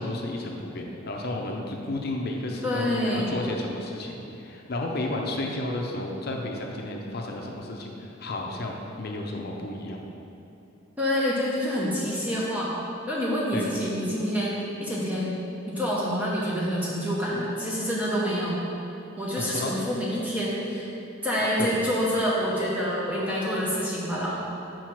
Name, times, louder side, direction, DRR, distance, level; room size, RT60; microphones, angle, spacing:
voice 1, 0.0-10.0 13.5-13.7 19.3-19.8 21.6-21.7, left 2 dB, 50° left, 1 dB, 0.6 m, -32 dB
voice 2, 2.6-3.3 11.0-12.7 13.1-15.4 15.7-18.6 19.2-20.9 21.2-24.4, equal, 5° right, -6 dB, 0.8 m, -27 dB
4.6 x 4.6 x 5.9 m, 2.9 s
head